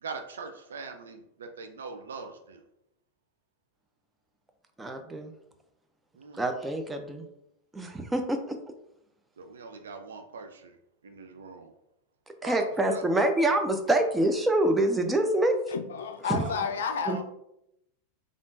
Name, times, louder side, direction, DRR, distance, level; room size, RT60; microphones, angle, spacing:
voice 1, 0.0-2.6 6.2-6.4 9.4-10.7 11.0-11.7 12.4-13.0 16.4-17.2, right 4 dB, 70° right, 6 dB, 0.3 m, -41 dB
voice 2, 4.8-5.3 6.3-7.3 7.7-8.6 12.4-15.6 16.3-16.5 17.1-17.2, right 1 dB, 10° right, 6 dB, 0.4 m, -26 dB
voice 3, 15.7-17.2, left 6 dB, 70° left, 7 dB, 0.3 m, -31 dB
3.4 x 2.4 x 2.5 m, 0.81 s
figure-of-eight pair, 90°, 0 cm